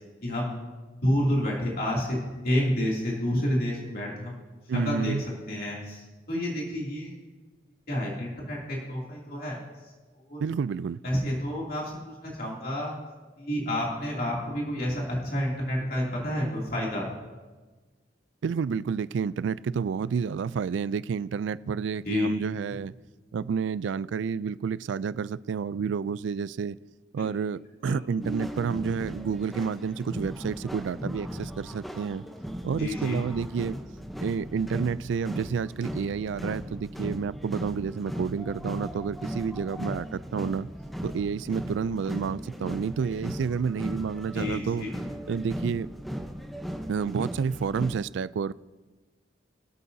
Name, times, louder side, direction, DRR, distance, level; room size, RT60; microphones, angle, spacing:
voice 1, 1.0-4.4 4.7-5.1 5.5-7.2 7.9-9.6 10.3-10.4 11.0-12.9 13.4-17.1 22.1-22.3 27.2-27.3 27.8-28.0 32.8-33.2 44.3-44.9, left 1 dB, 50° left, 2.7 m, -29 dB
voice 2, 4.7-5.2 10.4-11.0 18.4-22.9 23.3-26.8 27.1-32.2 32.6-33.8 34.2-40.7 41.0-44.9 45.3-45.9 46.9-48.5, right 6 dB, 75° right, 0.3 m, -30 dB
sound 1, 28.2-48.0, equal, ahead, 0.8 m, -37 dB
23.5 x 8.5 x 2.7 m
head